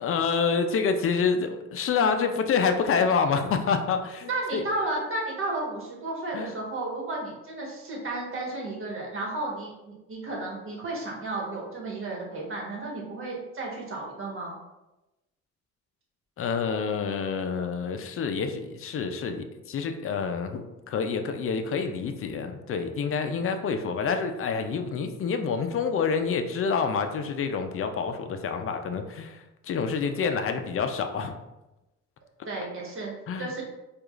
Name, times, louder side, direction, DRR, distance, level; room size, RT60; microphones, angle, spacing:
voice 1, 0.0-4.6 6.3-6.5 16.4-31.3 33.3-33.5, left 5 dB, 45° left, 7 dB, 0.5 m, -27 dB
voice 2, 4.2-14.6 32.5-33.1 33.4-33.6, right 2 dB, 45° right, -2 dB, 1.3 m, -33 dB
4.6 x 2.4 x 2.4 m, 0.99 s
cardioid pair, 90°, 30 cm